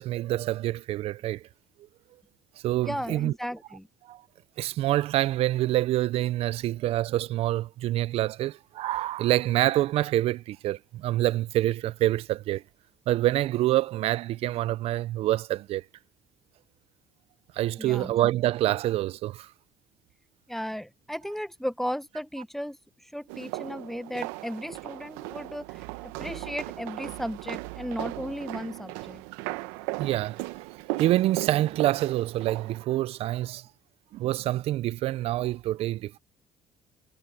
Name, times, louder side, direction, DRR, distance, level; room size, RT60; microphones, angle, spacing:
voice 1, 0.0-1.4 2.6-3.3 4.1-4.2 4.6-12.6 13.1-15.8 17.5-19.5 30.0-30.6 31.0-33.7 34.1-36.2, right 14 dB, 65° right, 0.7 m, -26 dB
voice 2, 2.8-3.9 17.8-18.2 20.5-29.2, equal, ahead, 1.2 m, -35 dB
sound 1, 23.3-32.8, right 21 dB, 80° right, 1.3 m, -37 dB
hypercardioid pair, 65°, 11 cm